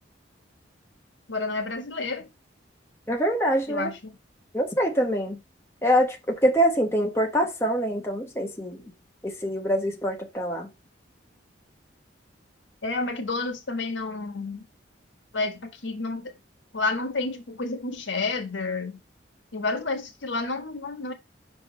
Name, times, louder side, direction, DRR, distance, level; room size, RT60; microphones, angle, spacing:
voice 1, 1.3-2.3 3.7-4.2 12.8-14.6 15.3-16.3 16.7-19.0 19.5-21.1, left 3 dB, 75° left, 1.6 m, -30 dB
voice 2, 3.1-3.9 4.5-5.4 5.8-8.8 9.2-10.7, equal, 15° left, 1.2 m, -24 dB
5.8 x 3.6 x 5.3 m
head